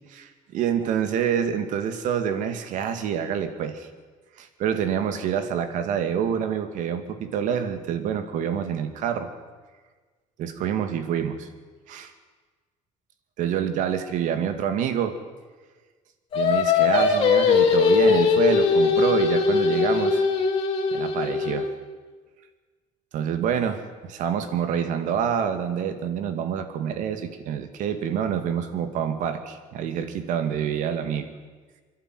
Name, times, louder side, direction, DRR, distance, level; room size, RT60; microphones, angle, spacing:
voice 1, 0.1-3.9 4.4-9.3 10.4-11.5 11.9-12.1 13.4-15.2 16.3-20.3 20.9-21.7 23.1-31.3, right 8 dB, 65° right, 9 dB, 2.2 m, -27 dB
Singing, 16.3-21.7, left 5 dB, 40° left, 3.7 m, -20 dB
27.0 x 12.0 x 9.5 m, 1.4 s
cardioid pair, 170°, 14 cm